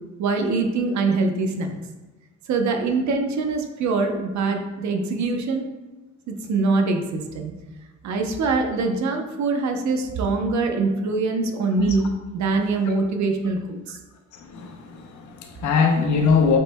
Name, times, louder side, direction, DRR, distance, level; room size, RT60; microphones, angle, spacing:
voice 1, 0.2-1.8 2.5-5.7 6.3-7.5 8.0-12.0 12.3-14.0, right 3 dB, 70° right, 4 dB, 0.8 m, -23 dB
voice 2, 14.3-16.6, left 5 dB, 75° left, 4 dB, 0.8 m, -22 dB
7.3 x 3.2 x 2.2 m, 1.1 s
cardioid pair, 90°, 30 cm